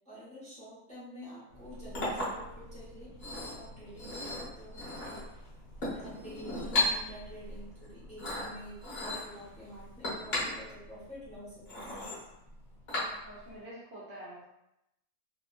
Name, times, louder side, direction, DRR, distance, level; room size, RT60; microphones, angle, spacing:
voice 1, 0.0-4.8 5.9-12.2, equal, 5° left, -10 dB, 0.9 m, -48 dB
Chink clink, 1.5-13.5, left 2 dB, 45° left, 1.2 m, -37 dB
voice 2, 13.2-14.5, right 1 dB, 60° right, -8 dB, 0.9 m, -46 dB
2.9 x 2.3 x 2.4 m, 0.88 s
omnidirectional pair, 1.5 m